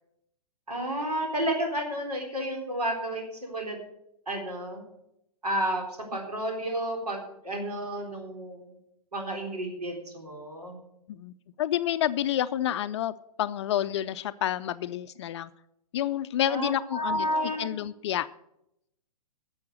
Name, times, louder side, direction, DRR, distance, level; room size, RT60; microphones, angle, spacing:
voice 1, 0.7-3.8 4.3-4.8 5.4-8.7 9.1-10.8 16.5-17.7, right 1 dB, 75° right, 1 dB, 3.9 m, -31 dB
voice 2, 11.1-15.5 15.9-17.3 17.6-18.3, left 11 dB, 45° left, 14 dB, 0.5 m, -29 dB
11.5 x 7.1 x 8.1 m, 0.81 s
figure-of-eight pair, 115°, 20 cm